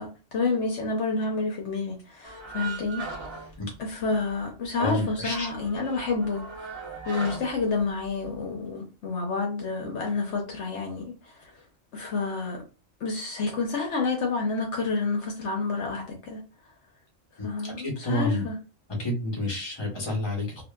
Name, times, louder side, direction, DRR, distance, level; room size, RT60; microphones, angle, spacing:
voice 1, 0.0-3.4 3.8-6.8 7.1-11.5 11.9-12.6 13.0-16.4 17.4-18.6, left 4 dB, 70° left, 1.0 m, -29 dB
sound 1, 2.2-4.4 4.6-4.7 5.1-8.3, right 4 dB, 25° right, 0.8 m, -39 dB
voice 2, 4.8-5.5 17.4-18.4 19.0-20.6, left 1 dB, 25° left, 1.0 m, -29 dB
2.7 x 2.5 x 2.3 m
omnidirectional pair, 1.3 m